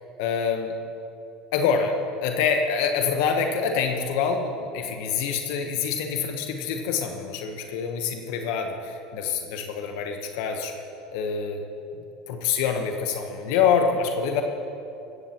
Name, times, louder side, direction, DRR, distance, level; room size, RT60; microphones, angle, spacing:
voice 1, 0.2-0.7 1.5-10.7 11.1-11.6 12.3-14.4, left 6 dB, 70° left, 5 dB, 1.0 m, -26 dB
16.0 x 14.5 x 3.0 m, 2.9 s
supercardioid pair, 115°, 0 cm